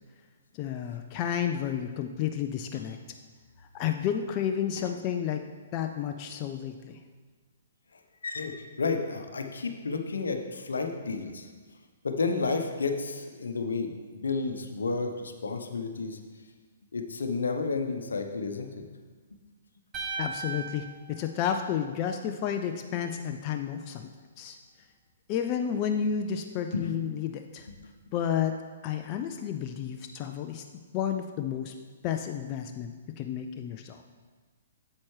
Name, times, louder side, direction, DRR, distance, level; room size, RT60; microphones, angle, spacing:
voice 1, 0.6-3.0 3.7-5.4 5.7-7.0 20.2-24.1 24.4-24.6 25.3-27.7 28.1-28.5 28.8-30.6 30.9-31.7 32.0-34.0, left 8 dB, 35° left, 5 dB, 0.4 m, -31 dB
voice 2, 8.2-11.5 12.0-16.2 16.9-18.8 26.7-26.9, left 4 dB, 75° left, 5 dB, 0.8 m, -31 dB
sound 1, 19.9-22.2, right 5 dB, 20° right, 1.2 m, -38 dB
8.4 x 7.5 x 3.2 m, 1.4 s
figure-of-eight pair, 125°, 0 cm